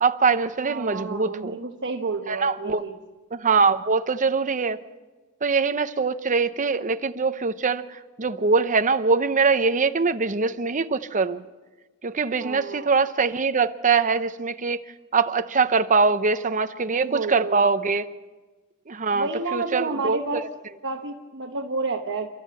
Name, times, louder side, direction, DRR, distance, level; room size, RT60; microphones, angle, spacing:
voice 1, 0.0-1.6 2.3-2.8 3.3-4.8 5.4-11.4 12.0-14.8 15.1-18.0 18.9-20.2, right 4 dB, 35° right, 10 dB, 0.8 m, -23 dB
voice 2, 0.6-3.0 12.4-12.9 16.9-17.7 19.1-20.5 20.8-22.3, right 3 dB, 55° right, 2 dB, 1.2 m, -30 dB
29.0 x 13.5 x 7.7 m, 1.2 s
head